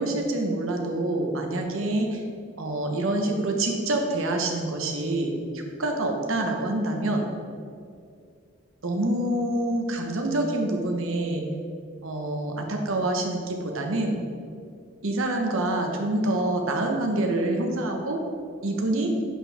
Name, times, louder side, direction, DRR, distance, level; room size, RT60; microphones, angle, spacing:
voice 1, 0.0-2.2 2.6-7.3 8.8-11.4 12.0-14.2 15.0-18.2 18.6-19.1, right 1 dB, 80° right, 2 dB, 1.0 m, -26 dB
10.5 x 4.6 x 3.5 m, 2.3 s
head